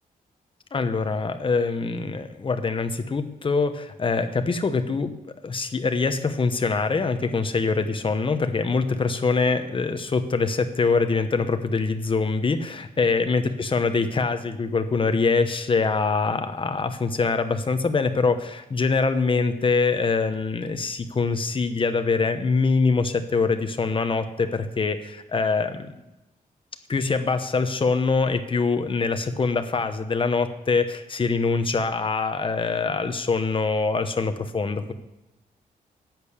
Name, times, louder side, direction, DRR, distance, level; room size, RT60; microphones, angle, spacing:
voice 1, 0.7-5.1 5.4-25.9 26.9-34.9, left 4 dB, 35° left, 8 dB, 1.0 m, -24 dB
10.5 x 8.6 x 7.0 m, 0.99 s
wide cardioid pair, 140°, 15 cm